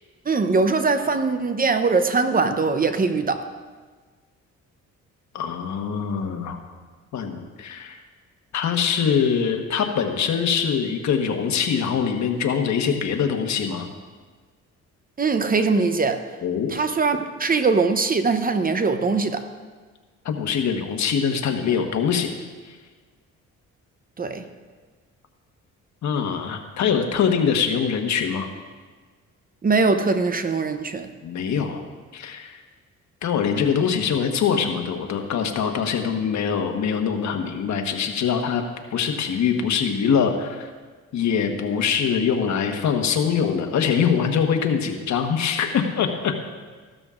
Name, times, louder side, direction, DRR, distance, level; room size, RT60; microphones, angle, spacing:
voice 1, 0.3-3.5 15.2-16.2 16.7-19.4 24.2-24.4 29.6-31.1, right 4 dB, 30° right, 8 dB, 0.7 m, -21 dB
voice 2, 5.3-6.6 7.1-8.0 8.5-13.9 16.4-16.7 20.2-22.3 26.0-28.5 31.2-31.8 32.1-32.5 33.2-38.6 38.9-40.7 41.1-46.3, left 7 dB, 65° left, 4 dB, 1.3 m, -23 dB
14.5 x 12.5 x 2.5 m, 1.5 s
cardioid pair, 90°, 30 cm